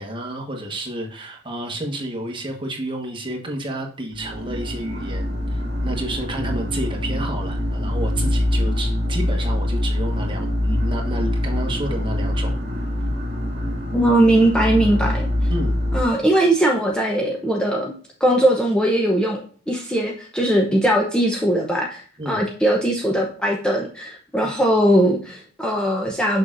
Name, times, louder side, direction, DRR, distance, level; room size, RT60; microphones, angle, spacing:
voice 1, 0.0-12.6 15.5-15.8 22.2-22.4, right 1 dB, 25° right, 1 dB, 1.4 m, -30 dB
sound 1, 4.1-16.0, left 1 dB, 55° right, 2.2 m, -24 dB
voice 2, 13.9-15.3 15.9-17.9 18.2-19.4 19.7-26.4, right 1 dB, 5° left, -1 dB, 0.7 m, -20 dB
6.6 x 6.1 x 2.6 m, 0.43 s
head